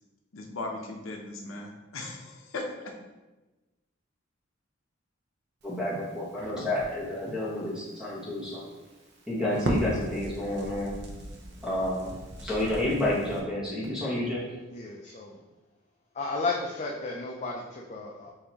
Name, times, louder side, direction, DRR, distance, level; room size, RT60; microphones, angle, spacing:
voice 1, 0.3-2.9, left 2 dB, 75° left, 2 dB, 0.6 m, -38 dB
voice 2, 5.6-8.6 9.3-10.9 11.6-12.1 12.4-14.4, left 1 dB, 5° right, -8 dB, 1.2 m, -30 dB
Crackle, 5.6-13.4, right 1 dB, 55° right, 0.7 m, -38 dB
voice 3, 14.7-15.4 16.1-18.3, left 3 dB, 35° left, -1 dB, 0.4 m, -33 dB
6.5 x 2.7 x 2.9 m, 1.1 s
head